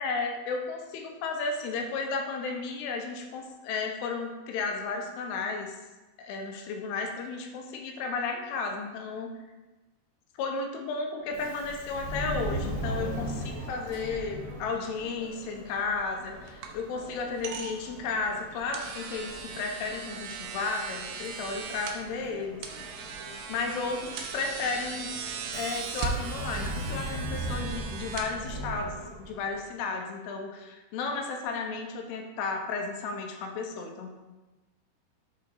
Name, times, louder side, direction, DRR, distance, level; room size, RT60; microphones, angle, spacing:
voice 1, 0.0-5.8 6.2-9.3 10.4-22.6 23.5-25.1 25.5-34.1, left 4 dB, 85° left, 3 dB, 2.6 m, -33 dB
Subway metro underground, 11.3-29.6, right 1 dB, 45° right, 1.9 m, -39 dB
sound 1, 15.7-29.0, right 5 dB, 85° right, 2.0 m, -39 dB
11.0 x 3.8 x 2.5 m, 1.1 s
omnidirectional pair, 4.7 m